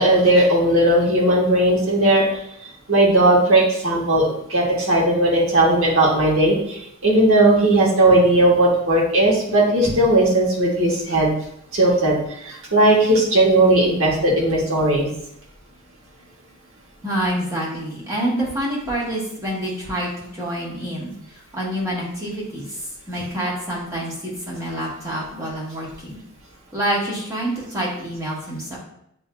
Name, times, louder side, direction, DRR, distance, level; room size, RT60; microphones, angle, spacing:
voice 1, 0.0-2.2 2.9-6.8 7.0-11.3 11.7-12.2 12.4-15.1, right 1 dB, 65° right, -3 dB, 1.3 m, -17 dB
voice 2, 17.0-20.1 20.4-21.1 21.5-22.8 23.1-26.2 26.7-28.8, right 1 dB, 15° right, -6 dB, 1.3 m, -27 dB
7.1 x 2.7 x 2.2 m, 0.76 s
head